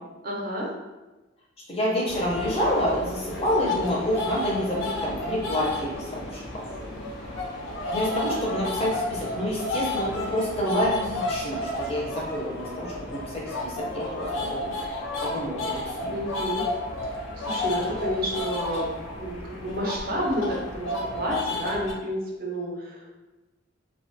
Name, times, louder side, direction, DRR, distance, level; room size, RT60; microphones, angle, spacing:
voice 1, 0.2-0.7 16.0-16.6 17.4-18.9 19.1-23.1, equal, 45° right, -3 dB, 0.5 m, -30 dB
voice 2, 1.7-6.6 7.2-7.6 7.9-14.7 15.2-16.2, equal, 30° left, -4 dB, 0.5 m, -28 dB
sound 1, 2.1-21.9, left 2 dB, 80° left, 0.5 m, -32 dB
2.2 x 2.1 x 2.6 m, 1.1 s
head